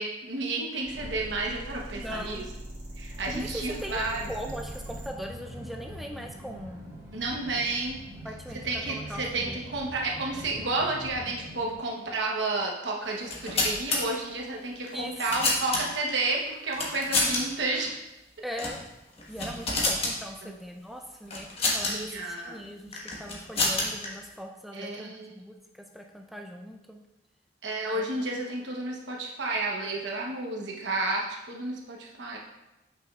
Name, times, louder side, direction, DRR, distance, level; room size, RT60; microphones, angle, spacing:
voice 1, 0.0-2.4 3.0-4.2 7.1-8.0 8.6-17.9 20.4-20.5 21.8-22.6 24.7-25.4 27.6-32.4, right 2 dB, 85° right, -1 dB, 1.0 m, -31 dB
sound 1, 0.8-5.1, right 1 dB, 50° right, 2.0 m, -41 dB
voice 2, 1.9-2.5 3.3-4.0 4.3-6.9 8.2-9.6 14.9-15.1 18.4-18.8 19.3-27.0 27.9-28.0, equal, ahead, 2 dB, 0.3 m, -40 dB
sound 2, 3.1-11.8, equal, 20° right, 2.4 m, -43 dB
sound 3, 13.2-14.0 14.9-16.1 16.7-17.4 17.7-17.8 18.5-18.8 19.2-20.1 21.3-21.9 22.9-24.1, left 2 dB, 35° left, 1.3 m, -28 dB
8.6 x 6.0 x 2.4 m, 0.98 s
head